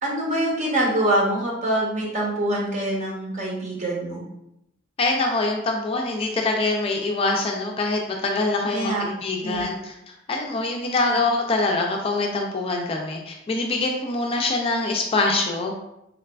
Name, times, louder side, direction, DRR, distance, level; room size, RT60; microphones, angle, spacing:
voice 1, 0.0-4.2 8.6-9.0 9.4-9.7, right 1 dB, 40° right, -3 dB, 0.8 m, -25 dB
voice 2, 5.0-9.9 10.3-15.7, left 2 dB, 30° left, 1 dB, 0.3 m, -24 dB
3.9 x 2.3 x 2.2 m, 0.84 s
head